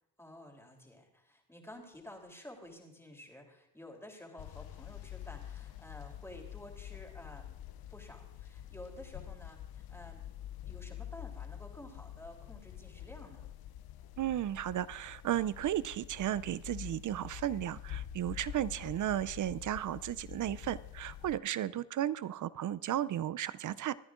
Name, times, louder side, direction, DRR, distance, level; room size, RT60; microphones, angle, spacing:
voice 1, 0.2-7.6 7.9-10.3 10.6-13.5, left 1 dB, 5° left, 1 dB, 3.3 m, -51 dB
sound 1, 4.4-21.4, left 11 dB, 55° left, 0.6 m, -47 dB
voice 2, 14.2-23.9, right 12 dB, 45° right, 18 dB, 0.5 m, -34 dB
25.0 x 9.7 x 2.5 m, 0.86 s
supercardioid pair, 75°, 45 cm